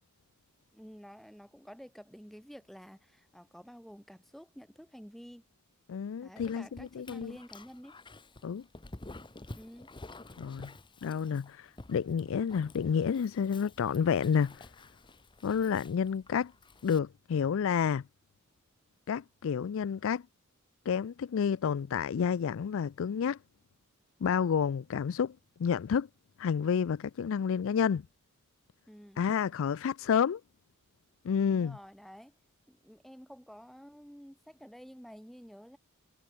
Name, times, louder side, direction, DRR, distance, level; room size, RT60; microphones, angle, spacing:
voice 1, 0.7-5.4 6.2-8.0 9.6-9.9 28.9-29.2 31.5-32.3 32.7-35.8, equal, ahead, 7.4 m, -50 dB
voice 2, 5.9-7.3 8.4-8.6 10.4-10.7 11.0-14.6 15.4-16.5 16.8-18.0 19.1-20.2 20.9-23.4 24.2-26.1 26.4-28.0 29.2-30.4 31.2-31.8, left 7 dB, 65° left, 0.4 m, -30 dB
Dog, 6.4-17.0, left 2 dB, 20° left, 1.2 m, -51 dB
head